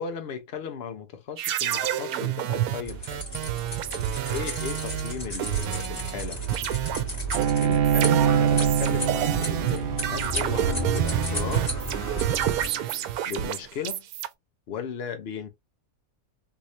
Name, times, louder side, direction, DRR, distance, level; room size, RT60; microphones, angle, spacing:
voice 1, 0.0-3.3 4.3-6.4 7.5-11.8 13.3-14.0 14.7-15.5, left 7 dB, 50° left, 0.9 m, -36 dB
sound 1, 1.4-6.2 6.5-14.3, right 11 dB, 90° right, 1.1 m, -29 dB
sound 2, 2.9-12.7, right 2 dB, 25° left, 2.2 m, -33 dB
Bowed string instrument, 7.3-12.7, right 8 dB, 70° right, 0.5 m, -25 dB
3.6 x 3.1 x 2.6 m
omnidirectional pair, 1.5 m